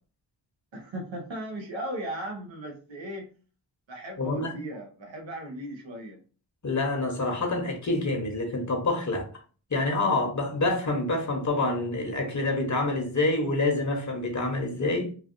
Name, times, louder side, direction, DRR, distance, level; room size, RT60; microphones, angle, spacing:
voice 1, 0.7-3.3 3.9-6.2, right 1 dB, 85° right, 1.0 m, -37 dB
voice 2, 4.2-4.5 6.6-9.3 9.7-15.1, left 2 dB, 40° left, 0.9 m, -27 dB
3.2 x 2.3 x 2.5 m
wide cardioid pair, 65°, 44 cm